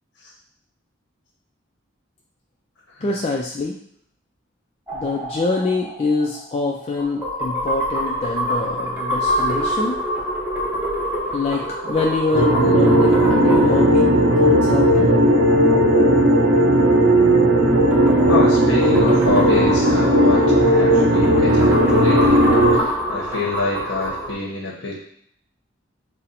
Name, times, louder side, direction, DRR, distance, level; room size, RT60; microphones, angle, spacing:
voice 1, 3.0-3.8 4.9-10.0 11.3-14.1 14.4-15.1, left 3 dB, 30° left, -1 dB, 0.3 m, -24 dB
sound 1, 4.9-15.5 17.4-24.3, equal, 10° right, 0.7 m, -27 dB
sound 2, 12.3-22.8, right 1 dB, 90° right, 0.8 m, -15 dB
voice 2, 18.3-22.4 22.7-25.0, left 2 dB, 80° left, -3 dB, 0.8 m, -26 dB
4.0 x 2.1 x 4.1 m, 0.69 s
head